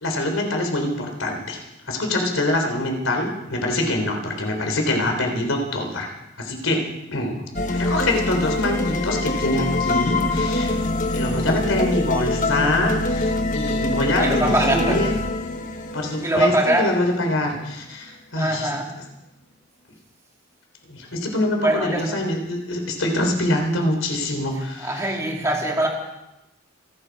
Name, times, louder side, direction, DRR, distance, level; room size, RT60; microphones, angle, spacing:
voice 1, 0.0-6.1 6.4-6.8 7.1-7.4 7.7-10.8 11.1-15.2 15.9-18.7 20.9-25.1, left 1 dB, 90° left, 3 dB, 3.7 m, -24 dB
sound 1, 7.6-17.7, left 2 dB, 40° left, 1.3 m, -24 dB
voice 2, 14.2-15.0 16.2-16.9 18.4-19.0 21.5-22.1 24.8-25.9, right 1 dB, 15° right, 0 dB, 2.6 m, -22 dB
28.5 x 10.5 x 4.8 m, 0.92 s
head